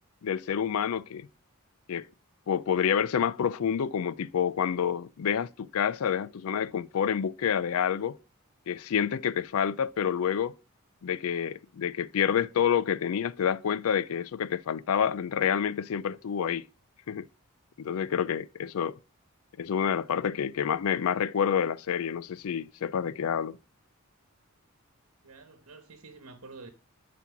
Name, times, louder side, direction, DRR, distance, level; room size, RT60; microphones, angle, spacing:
voice 1, 0.2-1.3 1.9-2.1 2.5-8.2 8.7-10.5 11.0-16.7 17.1-17.3 17.8-19.0 19.6-23.6, left 8 dB, 80° left, 0.4 m, -28 dB
voice 2, 25.2-26.7, right 3 dB, 80° right, 1.2 m, -48 dB
10.5 x 4.3 x 7.0 m
head